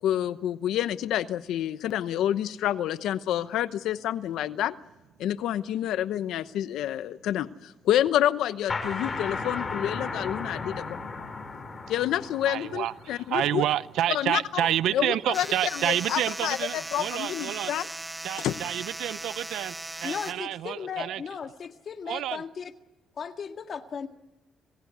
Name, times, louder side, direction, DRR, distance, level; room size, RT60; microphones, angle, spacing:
voice 1, 0.0-4.7 5.2-11.0 11.9-13.6 14.1-14.7 14.9-15.5 15.7-17.9 18.4-18.6, left 11 dB, 85° left, 0.9 m, -28 dB
sound 1, 8.7-14.1, left 4 dB, 35° left, 4.8 m, -35 dB
voice 2, 12.4-17.7 18.2-21.2 22.1-22.4, right 12 dB, 85° right, 0.7 m, -29 dB
sound 2, 15.3-20.3, right 2 dB, 10° right, 1.1 m, -38 dB
voice 3, 20.0-22.7 23.2-24.1, left 6 dB, 50° left, 1.8 m, -36 dB
27.0 x 18.5 x 8.2 m
cardioid pair, 105°, 0 cm